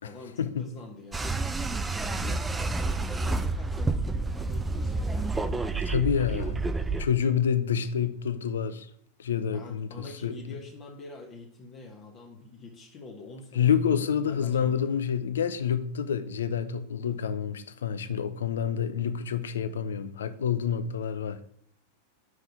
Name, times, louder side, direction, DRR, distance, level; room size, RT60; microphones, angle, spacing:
voice 1, 0.0-1.3 1.9-5.9 9.5-15.0, left 3 dB, 30° left, 1.2 m, -46 dB
sound 1, 1.1-7.0, right 3 dB, 10° right, 0.5 m, -29 dB
voice 2, 5.9-6.6 7.0-8.9 9.2-10.3 13.6-21.4, left 8 dB, 65° left, 0.6 m, -28 dB
6.2 x 5.2 x 5.8 m
figure-of-eight pair, 90°, 0 cm